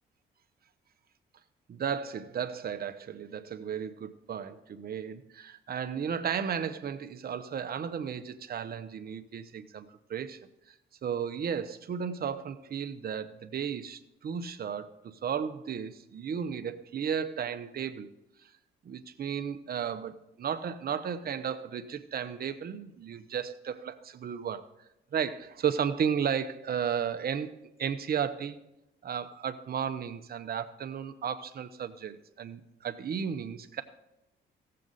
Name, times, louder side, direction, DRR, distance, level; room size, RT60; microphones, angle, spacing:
voice 1, 1.7-10.4 11.0-14.9 15.2-18.1 18.8-24.7 25.1-27.5 27.8-28.6 29.0-33.8, right 7 dB, 50° right, 0.8 m, -34 dB
16.0 x 7.6 x 4.0 m
cardioid pair, 90°, 20 cm